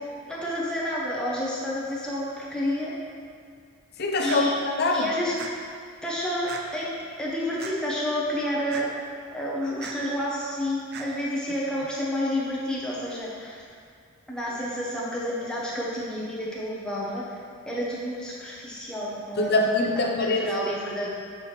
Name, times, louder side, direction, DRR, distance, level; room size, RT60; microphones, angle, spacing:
voice 1, 0.3-2.9 4.2-4.5 4.9-5.3 6.0-8.9 9.3-13.6 14.3-17.2 17.7-19.6 20.4-21.1, equal, 5° left, -6 dB, 0.9 m, -30 dB
voice 2, 4.0-5.1 19.4-20.5, left 2 dB, 50° left, 1 dB, 0.6 m, -24 dB
sound 1, 4.2-4.4 5.4-5.5 6.5-6.6 7.6-7.7 8.7-8.8 9.8-10.0 10.9-11.1, right 6 dB, 50° right, 0.4 m, -37 dB
7.4 x 4.7 x 3.2 m, 2.2 s
head